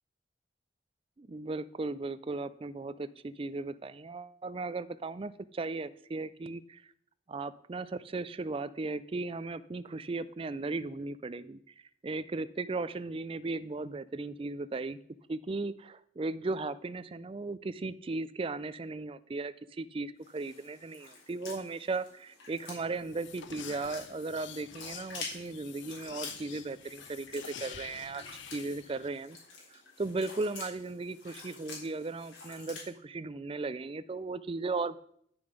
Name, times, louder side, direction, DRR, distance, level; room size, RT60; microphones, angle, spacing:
voice 1, 1.2-6.8 7.3-11.6 12.0-15.0 15.3-29.4 29.7-35.0, right 3 dB, 30° right, 16 dB, 0.3 m, -36 dB
sound 1, 20.2-32.9, left 4 dB, 85° left, 3.6 m, -48 dB
sound 2, 22.8-29.1, left 8 dB, 70° left, 0.6 m, -48 dB
9.8 x 6.9 x 5.1 m, 0.67 s
head